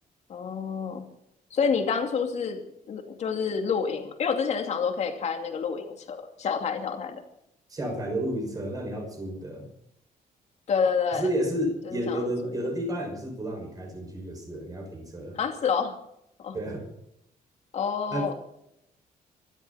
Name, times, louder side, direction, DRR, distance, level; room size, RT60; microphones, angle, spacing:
voice 1, 0.3-1.1 1.5-2.6 2.9-7.2 10.7-11.3 11.9-12.5 15.3-16.0 16.4-16.6 17.7-18.3, left 6 dB, 45° left, 4 dB, 2.6 m, -28 dB
voice 2, 7.7-9.7 11.1-15.4 16.5-16.9 18.1-18.3, right 1 dB, 25° right, 3 dB, 5.9 m, -31 dB
25.0 x 12.5 x 4.3 m, 0.78 s
cardioid pair, 175°, 15 cm